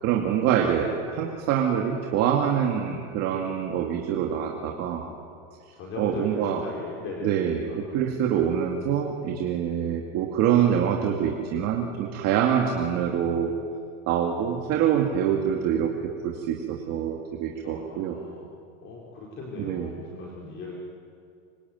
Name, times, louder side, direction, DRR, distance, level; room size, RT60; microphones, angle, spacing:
voice 1, 0.0-5.1 6.0-6.6 7.2-13.5 14.1-18.1 19.6-19.9, right 9 dB, 40° right, 2 dB, 2.4 m, -25 dB
voice 2, 5.7-7.5 15.3-16.2 17.6-18.5 18.8-20.7, left 3 dB, 30° left, -3 dB, 4.6 m, -39 dB
25.5 x 25.0 x 9.3 m, 2.3 s
supercardioid pair, 165°, 39 cm